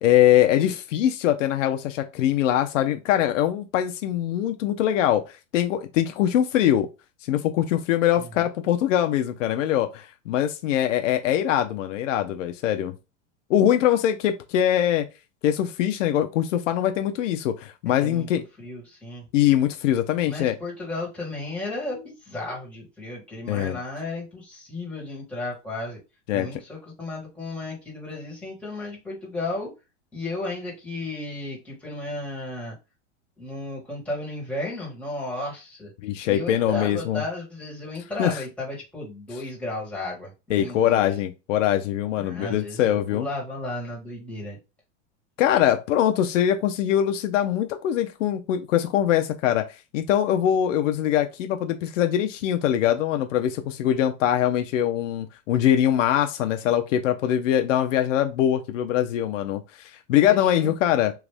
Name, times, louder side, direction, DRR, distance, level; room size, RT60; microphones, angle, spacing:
voice 1, 0.0-5.2 5.5-6.9 7.3-12.9 13.5-15.0 15.4-18.4 19.3-20.6 23.5-23.8 26.3-26.5 36.0-37.2 38.2-38.4 40.5-43.3 45.4-49.6 49.9-59.6 60.1-61.1, left 11 dB, 75° left, 0.7 m, -22 dB
voice 2, 8.2-8.5 18.0-18.3 18.6-19.2 20.3-26.0 26.3-29.7 30.1-32.7 33.4-35.9 36.3-41.1 42.2-44.6 60.3-60.7, left 2 dB, 5° left, 1.6 m, -34 dB
3.1 x 2.4 x 3.4 m
supercardioid pair, 135°, 38 cm